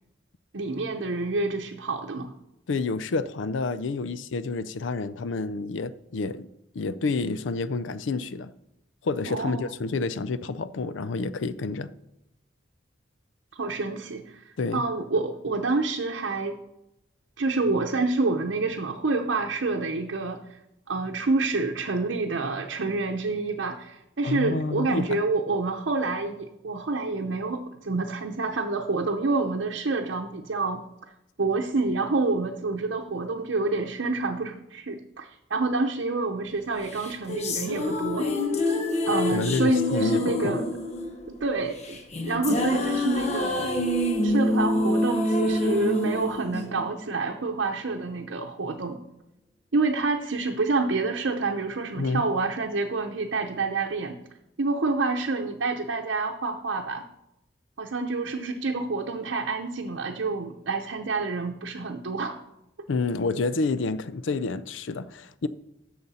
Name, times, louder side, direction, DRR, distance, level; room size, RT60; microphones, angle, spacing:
voice 1, 0.5-2.3 9.3-9.6 13.5-14.4 14.7-16.6 17.4-20.4 20.9-30.8 31.4-38.3 39.1-40.7 41.3-42.0 42.2-43.8 44.2-49.0 49.7-54.2 54.6-57.0 57.8-62.4, right 3 dB, 80° right, 0.7 m, -28 dB
voice 2, 2.7-6.5 6.7-8.5 9.0-11.9 14.6-14.8 24.2-25.2 39.3-40.6 52.0-52.2 62.9-65.5, left 3 dB, 90° left, 0.5 m, -29 dB
sound 1, 36.9-47.3, left 1 dB, 35° left, 0.9 m, -27 dB
10.5 x 6.6 x 4.2 m
head